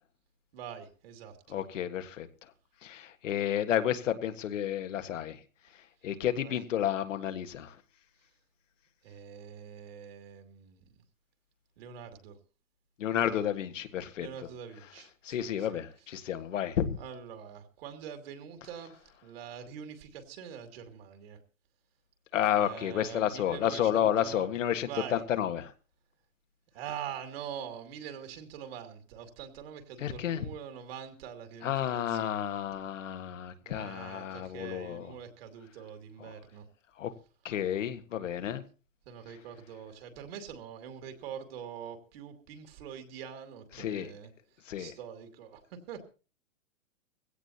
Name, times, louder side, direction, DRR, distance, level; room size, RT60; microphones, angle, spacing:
voice 1, 0.5-1.6 6.3-6.6 9.0-10.8 11.8-12.4 14.2-15.8 17.0-21.4 22.5-24.5 24.8-25.2 26.7-32.6 33.6-36.7 39.1-44.3 44.8-46.0, right 8 dB, 50° right, 2.5 m, -44 dB
voice 2, 1.5-2.3 2.8-5.4 6.0-7.7 13.0-14.3 15.2-17.0 22.3-25.7 30.0-30.4 31.6-35.1 37.0-37.1 37.4-38.6 43.8-44.1 44.7-44.9, left 10 dB, 70° left, 1.7 m, -31 dB
20.5 x 16.5 x 2.9 m
hypercardioid pair, 160°, 39 cm